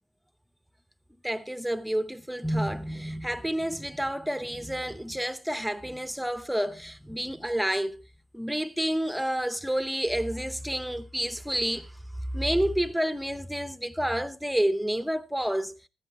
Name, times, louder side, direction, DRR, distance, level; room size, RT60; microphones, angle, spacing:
voice 1, 1.2-8.0 8.3-12.0 12.3-15.8, equal, ahead, 0.9 m, -29 dB
15.0 x 13.0 x 2.9 m
cardioid pair, 90°, 0 cm